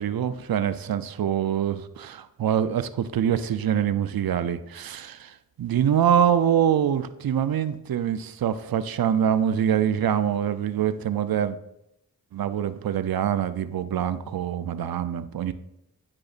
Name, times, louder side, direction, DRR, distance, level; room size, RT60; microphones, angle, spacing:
voice 1, 0.0-11.6 12.3-15.5, right 9 dB, 70° right, 13 dB, 0.5 m, -25 dB
9.3 x 5.0 x 2.5 m, 0.84 s
cardioid pair, 45°, 37 cm